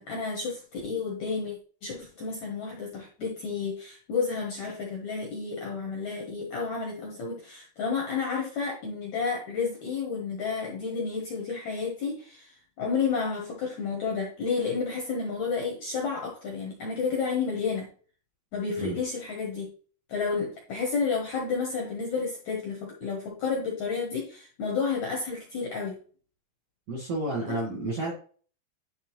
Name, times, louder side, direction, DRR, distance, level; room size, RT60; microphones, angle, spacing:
voice 1, 0.0-17.9 18.5-19.7 20.1-26.0 27.5-27.6, left 5 dB, 70° left, -1 dB, 1.8 m, -31 dB
voice 2, 26.9-28.1, right 2 dB, 60° right, -3 dB, 1.7 m, -31 dB
10.5 x 3.7 x 3.0 m, 0.42 s
omnidirectional pair, 4.7 m